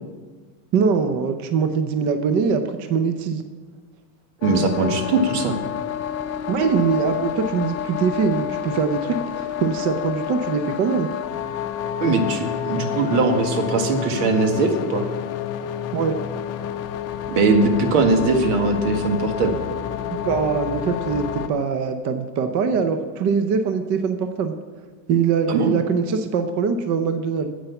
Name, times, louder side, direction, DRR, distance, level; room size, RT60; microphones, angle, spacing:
voice 1, 0.7-3.4 6.5-11.1 15.9-16.2 20.1-24.5 25.1-27.5, right 6 dB, 40° right, 8 dB, 0.7 m, -22 dB
sound 1, 4.4-21.5, left 9 dB, 35° left, 0.6 m, -29 dB
voice 2, 4.4-5.6 12.0-15.1 17.3-19.5 25.5-25.7, right 3 dB, 80° right, 5 dB, 1.8 m, -20 dB
10.0 x 7.9 x 7.0 m, 1.5 s
supercardioid pair, 150°, 47 cm